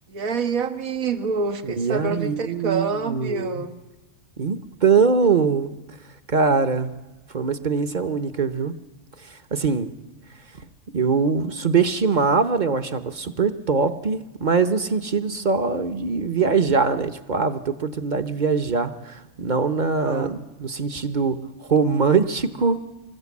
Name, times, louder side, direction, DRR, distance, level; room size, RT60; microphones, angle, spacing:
voice 1, 0.1-3.7 20.0-20.3, right 4 dB, 85° right, 8 dB, 1.8 m, -27 dB
voice 2, 1.6-3.6 4.4-5.7 6.3-6.9 7.3-8.7 9.3-9.9 10.9-22.8, right 5 dB, 40° right, 12 dB, 0.9 m, -22 dB
25.5 x 14.5 x 8.4 m, 1.1 s
omnidirectional pair, 1.4 m